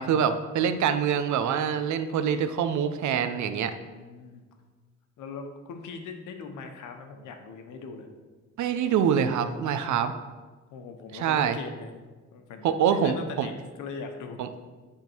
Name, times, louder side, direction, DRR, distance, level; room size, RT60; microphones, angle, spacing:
voice 1, 0.0-3.8 8.6-10.1 11.1-11.6 12.6-13.5 14.4-14.5, right 8 dB, 70° right, 10 dB, 0.6 m, -25 dB
voice 2, 3.6-4.4 5.2-8.1 9.8-10.0 10.7-13.5 13.8-14.4, left 5 dB, 85° left, 5 dB, 1.0 m, -41 dB
10.5 x 3.7 x 4.5 m, 1.3 s
cardioid pair, 90°, 30 cm